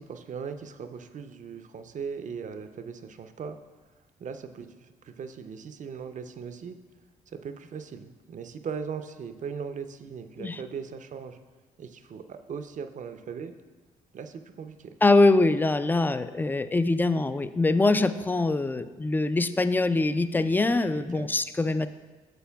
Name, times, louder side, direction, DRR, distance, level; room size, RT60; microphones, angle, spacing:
voice 1, 0.0-3.6 4.2-6.8 7.3-11.4 11.8-13.5 14.1-15.0 20.9-21.3, right 6 dB, 45° right, 9 dB, 0.6 m, -39 dB
voice 2, 15.0-21.9, left 2 dB, 10° left, 12 dB, 0.3 m, -23 dB
9.0 x 6.6 x 2.3 m, 1.3 s
hypercardioid pair, 50°, 18 cm